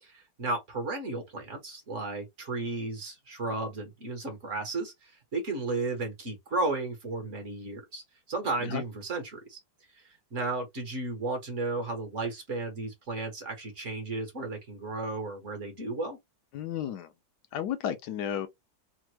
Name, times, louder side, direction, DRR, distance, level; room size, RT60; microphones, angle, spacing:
voice 1, 0.0-8.0 8.3-9.6 10.3-16.2, right 2 dB, 50° right, 1.2 m, -34 dB
voice 2, 16.5-17.1 17.5-18.5, left 9 dB, 75° left, 1.2 m, -33 dB
3.4 x 2.1 x 3.0 m
omnidirectional pair, 1.9 m